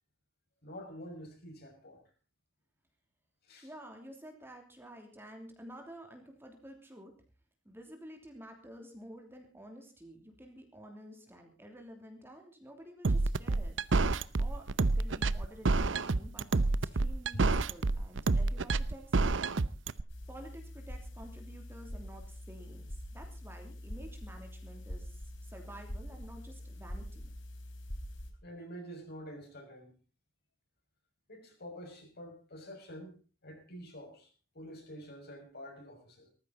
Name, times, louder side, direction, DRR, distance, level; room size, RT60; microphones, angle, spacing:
voice 1, 0.6-2.0 3.4-3.7 17.3-17.4 28.4-29.9 31.3-33.2 33.4-34.3 34.5-36.3, equal, 55° left, 3 dB, 6.3 m, -47 dB
voice 2, 3.6-7.1 7.6-13.8 14.4-16.5 16.8-19.4 20.3-25.2 25.5-27.3, right 1 dB, 10° right, 3 dB, 3.1 m, -51 dB
sound 1, 13.0-20.0, right 3 dB, 70° right, 0.7 m, -28 dB
sound 2, 20.1-28.3, left 1 dB, 85° left, 3.8 m, -44 dB
19.0 x 14.5 x 4.1 m, 0.34 s
head